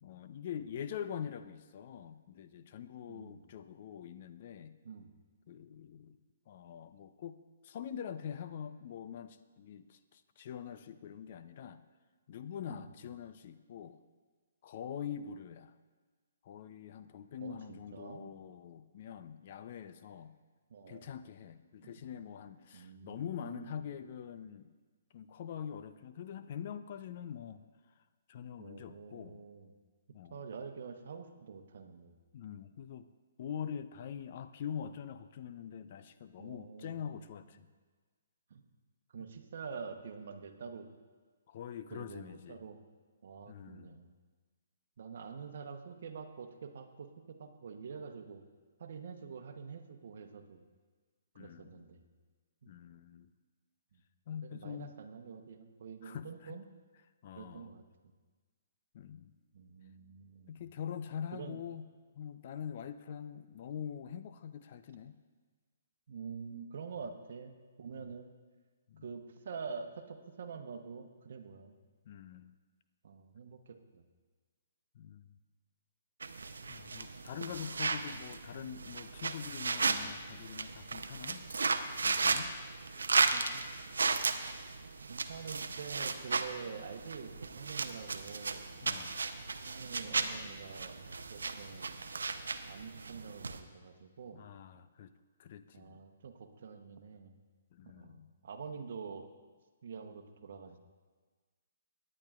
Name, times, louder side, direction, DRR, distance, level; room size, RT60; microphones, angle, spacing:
voice 1, 0.0-4.7 5.5-6.2 6.5-7.4 7.6-11.8 12.3-14.0 14.6-15.7 16.4-20.4 20.9-24.7 25.1-27.6 28.3-29.4 30.1-30.4 32.3-33.1 33.4-37.7 41.5-42.6 43.5-44.0 51.4-51.8 52.7-53.3 54.3-54.9 56.0-56.6 57.2-57.7 58.9-59.3 60.5-61.9 62.1-65.1 67.9-68.1 68.9-69.0 72.1-72.5 74.9-75.3 76.7-81.5 82.0-82.5 88.8-89.2 94.3-95.1 95.4-96.0 97.7-98.3, left 8 dB, 50° left, 11 dB, 0.5 m, -44 dB
voice 2, 3.1-3.4 4.8-5.2 12.7-12.9 17.4-18.3 20.7-21.1 21.8-21.9 22.7-23.8 28.6-29.7 30.3-32.2 36.4-37.5 38.5-38.6 39.1-40.9 41.9-42.8 43.2-44.1 45.0-48.4 48.8-50.6 51.3-52.1 52.6-52.7 53.9-54.0 54.4-56.6 57.3-57.8 59.5-60.6 61.3-61.6 66.1-68.3 69.0-71.7 73.0-74.0 83.3-83.7 85.1-88.7 89.6-91.0 91.3-92.0 92.7-94.5 95.7-97.4 97.8-99.3 99.8-100.8, right 6 dB, 60° right, 7 dB, 0.9 m, -46 dB
sound 1, 76.2-93.6, right 4 dB, 80° right, 0.6 m, -35 dB
17.5 x 9.9 x 2.4 m, 1.4 s
hypercardioid pair, 135°, 0 cm